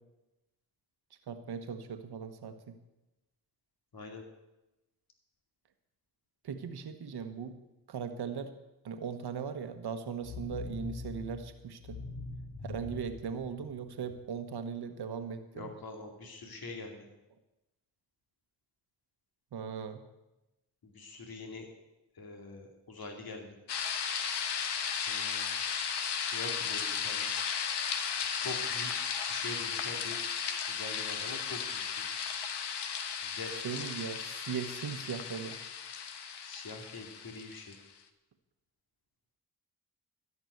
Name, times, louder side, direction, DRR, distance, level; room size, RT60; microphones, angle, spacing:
voice 1, 1.3-2.7 6.4-7.5 7.9-8.5 8.8-12.0 12.6-15.7 19.5-20.0 33.5-35.6, right 6 dB, 70° right, 8 dB, 1.3 m, -39 dB
voice 2, 3.9-4.2 15.5-17.1 20.8-21.7 22.2-23.6 25.1-25.6 26.2-27.3 28.3-30.2 30.7-32.0 33.2-33.5 36.4-37.8, left 3 dB, 60° left, 2 dB, 2.5 m, -44 dB
sound 1, 10.2-14.2, left 3 dB, 40° left, 1.6 m, -43 dB
sound 2, 23.7-37.8, left 7 dB, 75° left, 1.1 m, -35 dB
13.0 x 5.9 x 9.2 m, 0.98 s
supercardioid pair, 40°, 41 cm